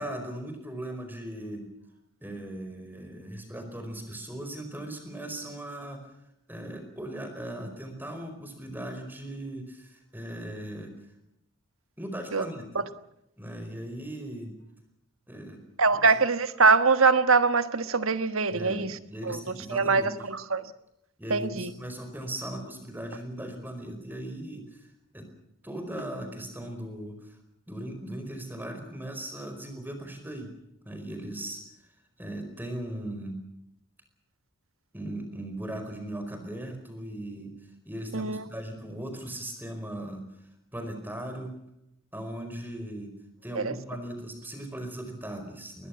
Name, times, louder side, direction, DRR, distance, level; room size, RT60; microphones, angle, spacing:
voice 1, 0.0-1.6 2.2-6.0 6.5-10.9 12.0-12.9 13.4-14.5 15.3-15.6 15.9-16.1 18.5-20.1 21.2-24.8 25.1-25.3 25.6-27.4 27.7-30.5 30.8-31.6 32.2-33.4 34.9-37.5 37.8-40.2 40.7-41.5 42.1-43.1 43.4-45.9, right 1 dB, 10° right, 6 dB, 4.7 m, -38 dB
voice 2, 15.8-19.0 19.2-19.4 19.7-20.7 21.3-21.7 38.1-38.4 43.6-43.7, right 4 dB, 70° right, 11 dB, 1.4 m, -23 dB
22.0 x 20.0 x 7.1 m, 0.80 s
head